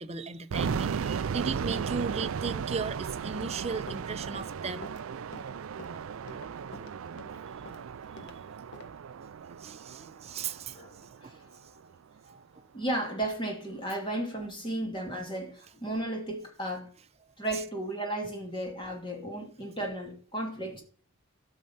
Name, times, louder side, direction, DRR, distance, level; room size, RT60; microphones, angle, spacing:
voice 1, 0.0-4.9 9.6-11.7 12.3-12.4, right 4 dB, 30° right, 0.7 m, -36 dB
sound 1, 0.5-11.4, right 6 dB, 70° right, 0.4 m, -36 dB
Run, 3.2-8.4 8.7-8.9, left 1 dB, 55° left, 1.4 m, -48 dB
voice 2, 10.7-11.4 12.7-16.9 17.4-20.8, right 1 dB, 20° left, 2.6 m, -34 dB
12.0 x 6.6 x 5.6 m
head